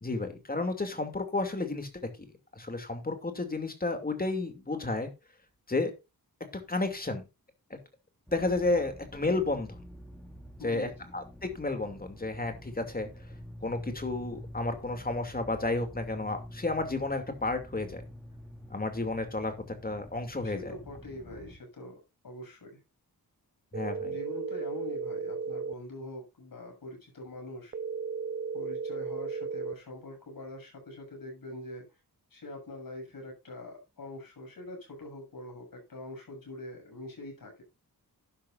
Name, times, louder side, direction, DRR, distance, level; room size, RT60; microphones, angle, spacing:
voice 1, 0.0-1.9 2.5-5.1 5.7-5.9 6.5-7.2 7.7-7.8 8.3-9.8 10.6-13.1 13.6-18.0 18.7-19.5 19.8-20.7 23.7-24.2, left 2 dB, 25° left, 6 dB, 2.7 m, -32 dB
sound 1, 8.3-21.5, equal, 5° left, 3.8 m, -47 dB
voice 2, 10.6-11.1 20.4-22.8 24.0-27.7 28.5-31.8 32.3-37.6, left 1 dB, 65° left, 3 dB, 7.2 m, -44 dB
sound 2, 23.7-25.7 27.7-29.7, right 5 dB, 30° right, 0.6 m, -35 dB
12.0 x 11.5 x 2.6 m, 0.26 s
wide cardioid pair, 155°, 37 cm